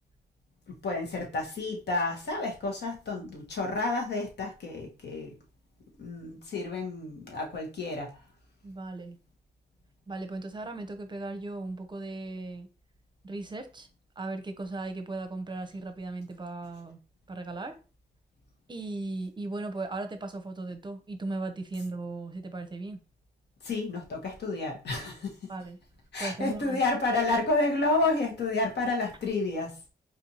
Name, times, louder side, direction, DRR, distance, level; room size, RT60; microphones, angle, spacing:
voice 1, 0.7-5.3 6.0-8.1 23.6-25.3 26.1-29.8, left 2 dB, 75° left, 1.3 m, -30 dB
voice 2, 8.6-9.2 10.1-12.7 13.2-13.9 14.2-17.0 17.3-17.7 18.7-23.0 25.5-25.8 26.2-26.8, right 2 dB, 25° right, 0.7 m, -37 dB
4.2 x 2.6 x 2.9 m
cardioid pair, 70°, 18 cm